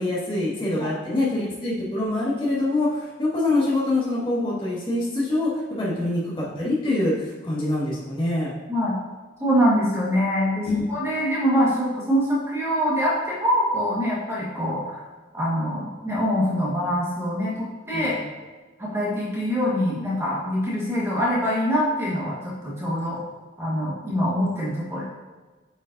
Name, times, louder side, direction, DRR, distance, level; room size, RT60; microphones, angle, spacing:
voice 1, 0.0-8.5 10.6-10.8 17.9-18.2, left 2 dB, 25° left, -7 dB, 1.7 m, -25 dB
voice 2, 9.4-15.0 15.3-18.2 18.8-23.2 23.6-25.0, equal, 15° right, -6 dB, 1.4 m, -24 dB
8.5 x 5.2 x 2.6 m, 1.3 s
head